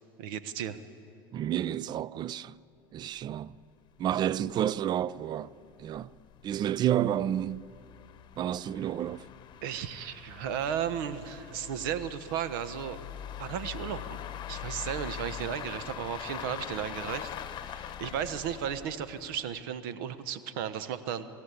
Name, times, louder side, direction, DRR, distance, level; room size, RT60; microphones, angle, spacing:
voice 1, 0.2-0.8 9.6-13.0 13.4-14.2 14.5-21.3, right 9 dB, 65° right, 1.1 m, -35 dB
voice 2, 1.3-2.6 2.9-3.6 4.0-5.5 5.8-6.1 6.4-7.7 8.4-9.3, right 11 dB, 35° right, 0.5 m, -30 dB
sound 1, 3.2-3.3 3.5-3.6 4.1-4.2 4.5-4.6 5.2-19.6, left 10 dB, 40° left, 1.1 m, -43 dB
26.5 x 13.5 x 8.5 m
hypercardioid pair, 85°, 12 cm